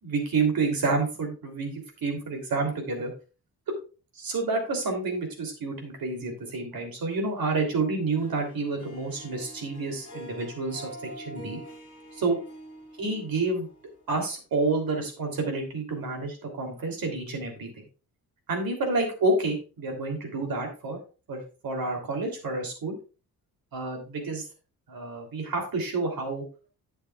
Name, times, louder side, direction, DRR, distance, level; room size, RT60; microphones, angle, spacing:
voice 1, 0.0-3.1 4.1-10.9 11.2-11.6 12.1-12.4 13.0-13.7 14.1-17.7 18.5-21.0 21.3-22.9 23.7-24.4 24.9-26.4, right 3 dB, 70° right, 3 dB, 3.1 m, -29 dB
Harp, 8.2-14.4, right 1 dB, 40° left, 2.6 m, -46 dB
11.0 x 8.0 x 2.4 m, 0.33 s
wide cardioid pair, 140°, 37 cm